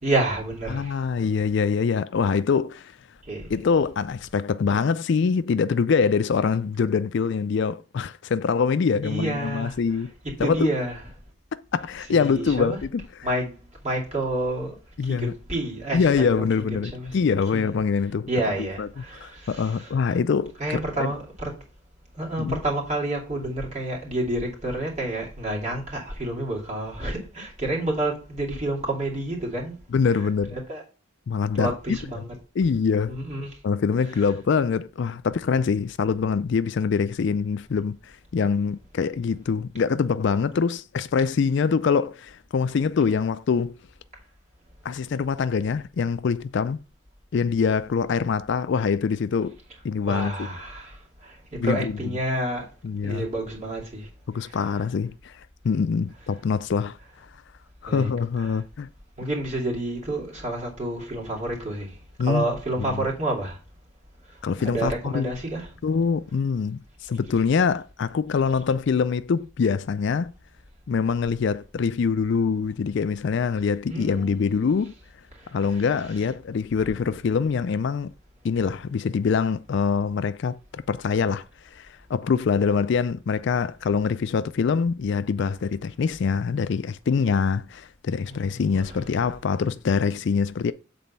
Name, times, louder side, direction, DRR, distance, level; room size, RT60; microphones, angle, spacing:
voice 1, 0.0-1.0 3.2-3.5 9.0-9.8 10.2-11.0 12.1-12.8 13.2-13.5 13.8-14.8 15.0-16.4 16.8-17.2 17.5-17.8 18.3-19.9 20.6-21.5 22.1-29.8 30.5-30.8 31.5-32.2 33.1-33.6 50.0-52.7 53.0-54.1 54.4-54.7 57.8-58.1 58.4-58.6 59.2-63.6 64.3-64.4 64.6-65.7 73.9-74.7 75.3-75.8 88.2-88.6 88.9-89.0, right 1 dB, 35° right, 2.6 m, -29 dB
voice 2, 0.7-2.9 3.5-10.1 10.4-10.7 11.7-13.1 15.0-15.3 15.9-18.3 18.6-18.9 19.2-21.1 22.4-22.6 29.9-30.5 31.3-32.0 32.6-33.1 33.6-43.7 44.8-46.8 47.3-49.6 49.8-50.5 51.6-52.0 52.8-53.3 54.3-55.3 55.6-57.0 57.8-58.9 62.2-63.1 64.4-65.3 65.8-70.3 70.9-74.9 75.5-78.1 78.4-81.4 81.7-90.7, left 5 dB, 55° left, 0.3 m, -24 dB
7.8 x 4.1 x 5.4 m
head